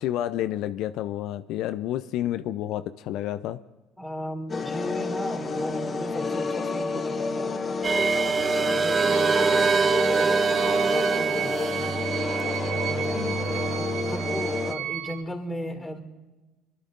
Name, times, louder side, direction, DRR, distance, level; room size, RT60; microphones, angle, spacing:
voice 1, 0.0-3.6 13.1-13.4, left 12 dB, 65° left, 11 dB, 0.5 m, -30 dB
voice 2, 4.0-7.6 8.1-12.1 12.7-16.0, equal, 5° left, 3 dB, 3.3 m, -36 dB
sound 1, 4.5-14.7, left 4 dB, 30° left, 1.5 m, -30 dB
sound 2, 7.8-14.7, right 5 dB, 30° right, 0.4 m, -25 dB
sound 3, 9.0-15.2, right 12 dB, 75° right, 0.7 m, -34 dB
25.0 x 11.5 x 3.9 m, 1.1 s
supercardioid pair, 95°, 0 cm